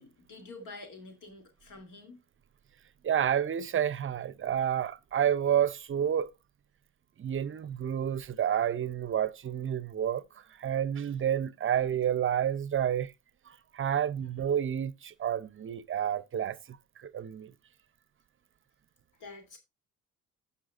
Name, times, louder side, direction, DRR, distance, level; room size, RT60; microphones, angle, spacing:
voice 1, 0.0-2.2 19.2-19.6, left 3 dB, 80° left, 2.9 m, -48 dB
voice 2, 3.0-6.3 7.2-10.2 10.6-13.1 13.7-16.8 17.0-17.5, right 9 dB, 45° right, 0.6 m, -29 dB
16.5 x 5.6 x 2.5 m
cardioid pair, 90°, 30 cm